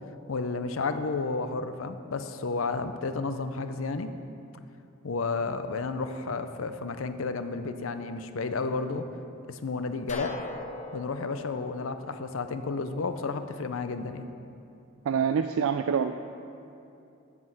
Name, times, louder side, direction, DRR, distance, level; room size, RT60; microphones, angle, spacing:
voice 1, 0.3-4.1 5.0-9.0 9.5-10.4 10.9-14.2, left 4 dB, 65° left, 9 dB, 0.6 m, -32 dB
sound 1, 10.1-12.9, left 2 dB, 35° left, 0.8 m, -40 dB
voice 2, 15.1-16.1, right 7 dB, 75° right, 7 dB, 0.4 m, -26 dB
9.4 x 6.1 x 7.5 m, 2.7 s
head